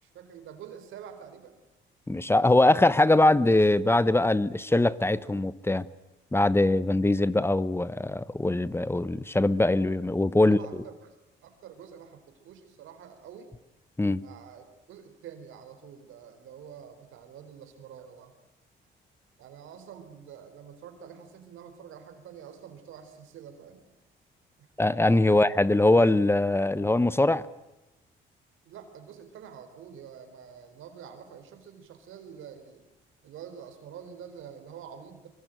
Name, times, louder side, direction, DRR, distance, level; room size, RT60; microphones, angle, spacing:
voice 1, 0.0-1.6 10.4-11.2 11.4-13.5 14.2-18.3 19.4-23.9 24.6-24.7 25.3-25.4 28.6-32.8 33.2-35.3, right 8 dB, 85° right, 4.3 m, -47 dB
voice 2, 2.1-5.9 6.3-10.6 14.0-14.2 24.8-27.5, left 2 dB, 10° left, 1.0 m, -22 dB
24.0 x 24.0 x 9.2 m
cardioid pair, 90°, 20 cm